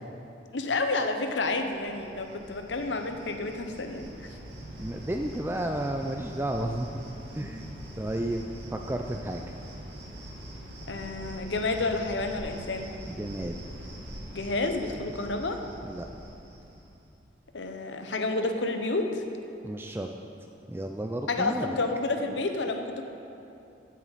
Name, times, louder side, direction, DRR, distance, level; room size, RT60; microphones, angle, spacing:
voice 1, 0.5-4.0 10.9-12.9 14.3-15.6 17.5-19.1 21.3-23.0, left 3 dB, 85° left, 6 dB, 0.9 m, -30 dB
Cricket, 1.3-17.0, equal, 70° right, 2.0 m, -43 dB
voice 2, 4.8-6.9 7.3-7.7 8.0-9.4 13.1-13.6 15.8-16.1 19.6-20.1 20.7-21.8, right 1 dB, 10° right, 3 dB, 0.3 m, -32 dB
15.5 x 7.4 x 4.1 m, 2.7 s
head